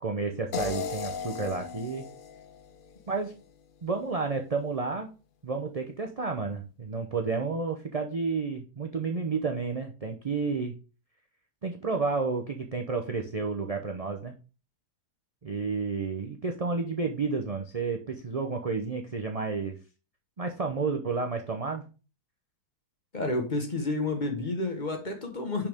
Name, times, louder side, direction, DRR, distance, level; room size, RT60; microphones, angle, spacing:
voice 1, 0.0-2.0 3.1-3.3 3.8-5.1 5.4-10.7 11.6-14.3 15.4-19.8 20.4-21.8, right 4 dB, 45° right, 0.4 m, -31 dB
sound 1, 0.5-3.6, left 6 dB, 60° left, 0.5 m, -37 dB
voice 2, 23.1-25.7, left 2 dB, 30° left, 1.3 m, -30 dB
6.4 x 5.9 x 3.5 m
omnidirectional pair, 1.7 m